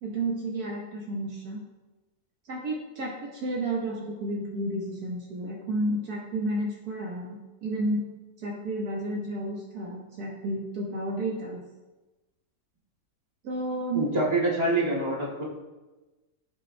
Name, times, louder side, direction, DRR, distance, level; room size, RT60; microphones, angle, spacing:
voice 1, 0.0-1.6 2.5-8.1 8.4-11.6 13.4-14.1, right 1 dB, 70° right, -2 dB, 1.5 m, -31 dB
voice 2, 13.9-15.4, right 2 dB, 25° right, -5 dB, 2.1 m, -26 dB
13.5 x 5.1 x 2.2 m, 1.1 s
omnidirectional pair, 1.7 m